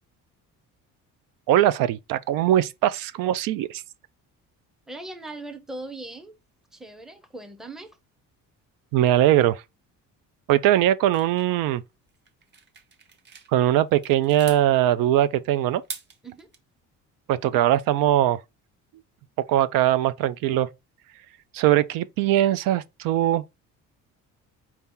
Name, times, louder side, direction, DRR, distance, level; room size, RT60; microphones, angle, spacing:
voice 1, 1.5-3.8 8.9-9.6 10.5-11.8 13.5-15.8 17.3-18.4 19.5-20.7 21.5-23.4, right 12 dB, 85° right, 0.5 m, -21 dB
voice 2, 4.9-6.4 6.7-8.0 16.2-16.5, right 2 dB, ahead, 0.5 m, -39 dB
sound 1, 11.1-13.5 13.9-14.6 15.7-16.6, right 5 dB, 35° right, 0.8 m, -42 dB
4.6 x 2.8 x 3.6 m
cardioid pair, 140°, 33 cm